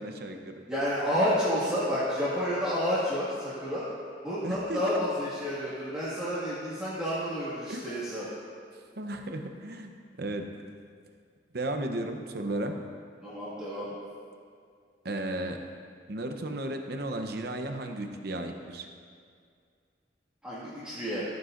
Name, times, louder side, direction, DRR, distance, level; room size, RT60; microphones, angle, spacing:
voice 1, 0.0-0.6 4.4-5.0 7.7-7.9 9.0-10.5 11.5-12.7 15.0-15.6 16.1-18.9, right 1 dB, 60° right, 5 dB, 0.8 m, -34 dB
voice 2, 0.7-3.9 4.2-8.3 13.2-14.0 20.4-21.2, equal, 5° right, -12 dB, 1.8 m, -30 dB
14.5 x 9.4 x 2.6 m, 2.1 s
head